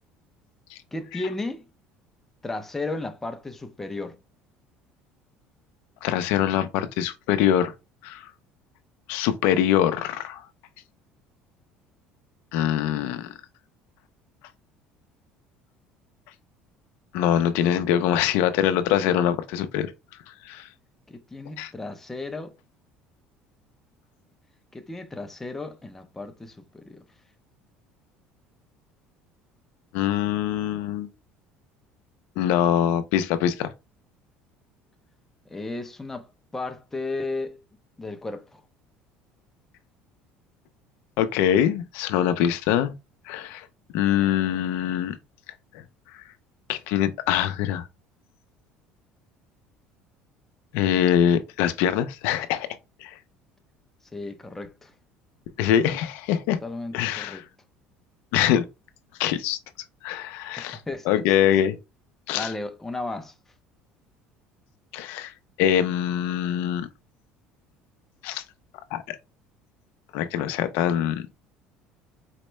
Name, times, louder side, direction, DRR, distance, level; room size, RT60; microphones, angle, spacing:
voice 1, 0.9-1.6 2.4-4.2 21.1-22.5 24.7-27.0 35.5-37.6 38.0-38.6 54.1-54.9 56.6-57.5 60.6-61.5 62.3-63.3, left 2 dB, 10° left, 0.4 m, -34 dB
voice 2, 6.0-7.7 8.0-8.2 9.1-10.4 12.5-13.3 17.1-19.9 20.5-20.7 21.6-21.7 29.9-31.1 32.4-33.7 41.2-42.9 43.3-43.7 43.9-45.2 46.7-47.8 50.7-52.7 53.0-53.1 55.6-56.6 56.9-57.4 58.3-58.6 59.2-59.6 60.0-60.8 61.1-61.8 62.3-62.5 64.9-65.3 65.6-66.9 68.2-68.4 68.9-69.2 70.1-71.2, left 10 dB, 75° left, 0.4 m, -23 dB
4.3 x 2.1 x 3.1 m
cardioid pair, 135°, 3 cm